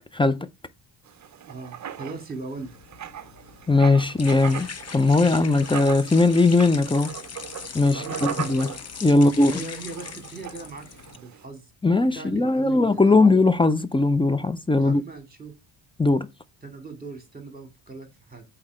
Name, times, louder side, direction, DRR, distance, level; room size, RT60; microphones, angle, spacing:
voice 1, 0.1-0.5 3.7-7.1 7.7-8.7 9.0-9.6 11.8-15.0 16.0-16.3, left 3 dB, 10° left, 0.4 m, -19 dB
Writing, 1.1-11.4, right 9 dB, 35° right, 0.7 m, -39 dB
voice 2, 1.5-2.7 7.9-8.7 9.0-11.7 12.0-13.4 14.8-15.5 16.6-18.4, right 3 dB, 20° right, 2.7 m, -39 dB
sound 1, 2.6-11.2, left 6 dB, 30° left, 0.8 m, -40 dB
8.4 x 4.4 x 4.8 m
cardioid pair, 105°, 49 cm